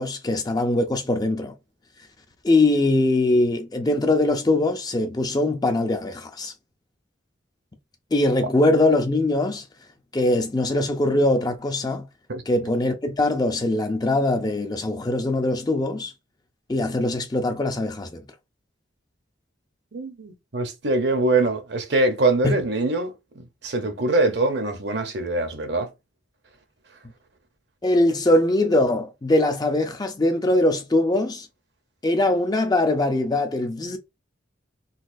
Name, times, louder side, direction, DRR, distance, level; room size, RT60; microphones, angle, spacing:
voice 1, 0.0-1.5 2.4-6.5 8.1-9.6 10.1-12.0 12.5-16.1 16.7-18.2 22.4-22.5 27.8-31.5 32.0-34.0, left 2 dB, 20° left, 0.5 m, -22 dB
voice 2, 19.9-25.9, right 2 dB, 60° right, 0.8 m, -23 dB
4.0 x 2.4 x 2.5 m
head